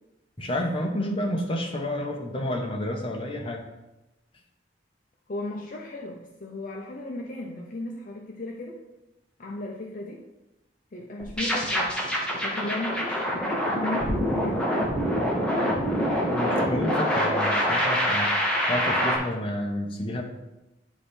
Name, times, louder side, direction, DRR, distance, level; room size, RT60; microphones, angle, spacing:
voice 1, 0.4-3.6 16.3-18.3 18.7-20.2, left 1 dB, 30° left, 1 dB, 1.0 m, -30 dB
voice 2, 5.3-8.8 9.4-10.2 10.9-12.0 12.4-14.9, left 2 dB, 50° left, 0 dB, 0.6 m, -35 dB
sound 1, 11.2-19.2, equal, 5° left, 1.2 m, -25 dB
9.8 x 3.3 x 4.2 m, 0.99 s
head